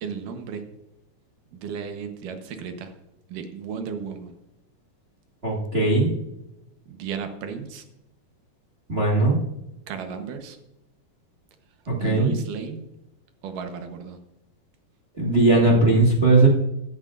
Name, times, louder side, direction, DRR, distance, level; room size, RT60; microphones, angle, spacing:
voice 1, 0.0-0.6 1.5-2.9 3.3-4.3 6.9-7.8 9.9-10.6 12.0-12.9 13.4-14.2, right 6 dB, 75° right, 6 dB, 2.6 m, -34 dB
voice 2, 5.4-6.1 8.9-9.4 11.9-12.3 15.1-16.5, right 2 dB, 30° right, -2 dB, 1.2 m, -18 dB
16.5 x 9.7 x 2.5 m, 0.87 s
omnidirectional pair, 3.8 m